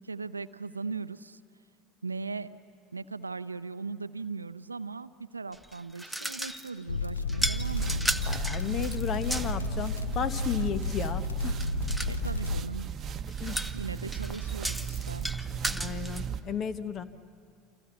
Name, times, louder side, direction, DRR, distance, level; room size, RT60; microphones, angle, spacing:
voice 1, 0.0-1.4 2.0-2.5 2.9-8.4 12.1-12.9 13.7-15.3, right 4 dB, 85° right, 14 dB, 0.6 m, -38 dB
sound 1, 5.5-6.8 7.3-9.6 11.6-12.2 13.3-16.2, right 1 dB, ahead, 1.0 m, -35 dB
sound 2, 6.9-12.6, left 4 dB, 80° left, 0.7 m, -32 dB
sound 3, 7.4-16.4, right 8 dB, 35° right, 1.0 m, -36 dB
voice 2, 8.3-11.6 13.4-13.6 15.7-17.0, left 8 dB, 35° left, 13 dB, 1.2 m, -34 dB
29.0 x 26.5 x 7.1 m, 2.3 s
figure-of-eight pair, 70°, 0 cm